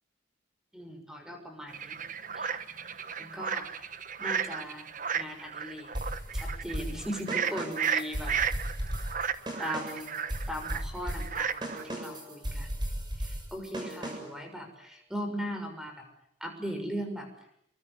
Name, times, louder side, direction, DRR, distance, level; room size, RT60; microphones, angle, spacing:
voice 1, 0.7-2.0 2.3-2.6 3.2-3.9 4.2-4.9 5.1-5.9 6.3-8.3 9.6-10.2 10.5-12.7 13.2-16.0 16.4-17.3, equal, 5° right, 5 dB, 6.2 m, -38 dB
sound 1, 1.7-11.9, right 7 dB, 45° right, 1.3 m, -34 dB
sound 2, 5.9-14.4, equal, 25° right, 7.3 m, -36 dB
28.0 x 23.5 x 8.2 m, 0.73 s
head